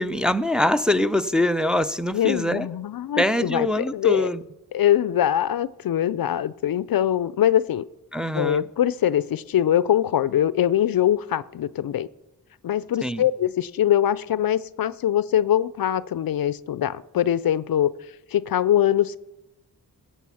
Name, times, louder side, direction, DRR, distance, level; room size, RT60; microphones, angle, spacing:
voice 1, 0.0-2.7 3.2-4.4 8.1-8.6 13.0-13.2, left 1 dB, ahead, 8 dB, 0.6 m, -23 dB
voice 2, 2.1-4.3 4.7-7.8 8.3-12.1 12.6-17.9 18.3-19.2, left 11 dB, 60° left, 18 dB, 0.5 m, -22 dB
15.0 x 8.4 x 5.8 m, 0.96 s
cardioid pair, 50°, 39 cm